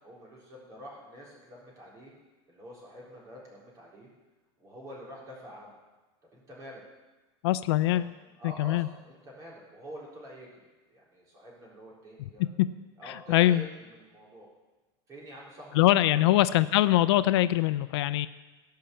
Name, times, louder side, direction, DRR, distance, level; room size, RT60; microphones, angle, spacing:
voice 1, 0.0-2.1 2.5-4.1 4.6-5.8 6.3-6.8 7.7-10.5 10.9-12.4 13.0-14.5 15.1-16.2, equal, 25° right, -4 dB, 3.8 m, -47 dB
voice 2, 7.4-8.1 8.4-8.9 13.3-13.7 15.7-18.3, left 15 dB, 75° left, 14 dB, 0.5 m, -23 dB
16.5 x 5.7 x 7.0 m, 1.2 s
supercardioid pair, 165°, 14 cm